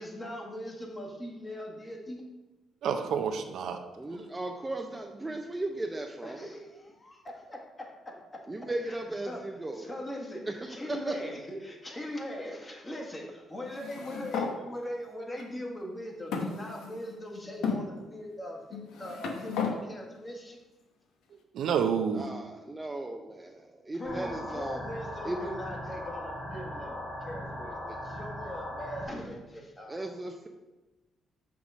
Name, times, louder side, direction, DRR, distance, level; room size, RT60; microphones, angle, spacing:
voice 1, 0.0-2.3 6.2-8.1 8.9-9.0 9.3-9.4 9.7-10.4 10.7-20.6 23.9-30.1, left 1 dB, 25° left, 0 dB, 1.5 m, -40 dB
voice 2, 2.8-3.8 4.1-4.2 21.5-22.2, right 7 dB, 75° right, 6 dB, 0.6 m, -29 dB
voice 3, 4.0-6.4 8.5-9.9 10.5-11.1 22.1-24.8 25.2-25.5 29.9-30.5, right 2 dB, 20° right, 2 dB, 0.5 m, -36 dB
sound 1, 13.7-14.6 15.4-15.5 16.3-17.1 17.6-17.8 18.7-19.8, left 5 dB, 85° left, 0.8 m, -33 dB
sound 2, 24.1-29.1, left 1 dB, 55° left, 2.0 m, -39 dB
6.0 x 3.6 x 6.1 m, 1.1 s
cardioid pair, 90°, 0 cm